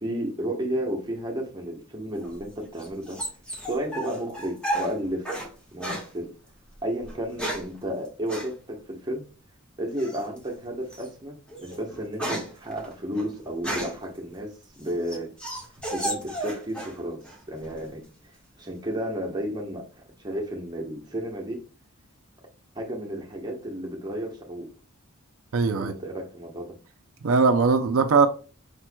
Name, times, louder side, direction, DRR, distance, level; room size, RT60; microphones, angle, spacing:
voice 1, 0.0-3.2 3.7-5.3 5.7-6.3 6.8-9.3 9.8-14.5 14.8-15.3 15.9-17.2 17.5-18.0 18.6-19.8 20.2-21.6 22.7-24.7 25.7-26.7, right 1 dB, 20° right, 1.0 m, -32 dB
sound 1, 2.2-5.5 5.8-6.1 7.0-7.8 8.3-8.5 10.0-10.4 10.9-11.1 11.5-14.1 14.6-17.0 17.2-17.9, right 1 dB, 5° left, 1.4 m, -33 dB
voice 2, 25.5-25.9 27.2-28.3, right 4 dB, 75° right, 0.5 m, -20 dB
5.1 x 4.4 x 2.2 m
head